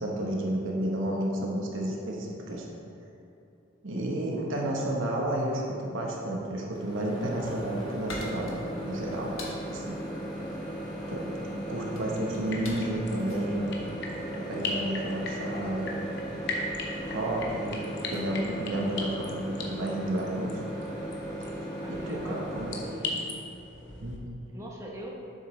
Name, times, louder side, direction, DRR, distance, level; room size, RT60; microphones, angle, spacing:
voice 1, 0.0-2.7 3.8-9.3 9.7-10.0 11.1-13.7 14.3-16.0 17.0-20.5 21.4-21.5 21.9-22.7 24.0-24.1, right 1 dB, 65° right, -2 dB, 1.0 m, -31 dB
Microwave oven, 6.7-23.0, equal, 20° left, 1.1 m, -37 dB
sound 1, 8.0-14.6, left 2 dB, 80° left, 1.2 m, -45 dB
sound 2, 12.4-24.2, left 2 dB, 55° left, 0.9 m, -39 dB
voice 2, 21.8-23.4 24.5-25.1, equal, 15° right, -3 dB, 0.9 m, -42 dB
7.7 x 6.7 x 3.2 m, 2.7 s
head